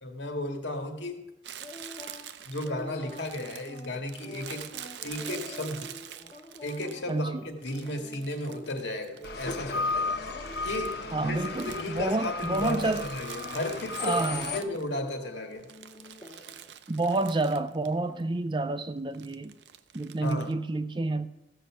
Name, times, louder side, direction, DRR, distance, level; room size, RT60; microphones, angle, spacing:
voice 1, 0.0-1.2 2.5-4.7 5.0-5.9 6.6-10.1 10.6-11.4 11.7-14.2 14.5-15.7 20.2-20.5, left 1 dB, 85° left, 1.9 m, -34 dB
Crumpling crinkling, 1.4-7.2 7.6-9.8 10.1-15.1 15.5-17.9 18.2-18.3 19.1-20.5, right 10 dB, 80° right, 0.6 m, -46 dB
sound 1, 1.6-2.3 2.6-10.6 11.0-12.3 12.6-13.0 13.3-16.7 17.0-17.6 18.1-18.2, left 1 dB, 30° left, 1.5 m, -47 dB
voice 2, 7.1-7.4 11.1-13.1 14.0-14.6 16.9-19.6 19.9-21.3, right 2 dB, 25° right, 0.5 m, -29 dB
sound 2, 9.2-14.6, left 3 dB, 65° left, 0.9 m, -34 dB
15.0 x 5.6 x 7.4 m
head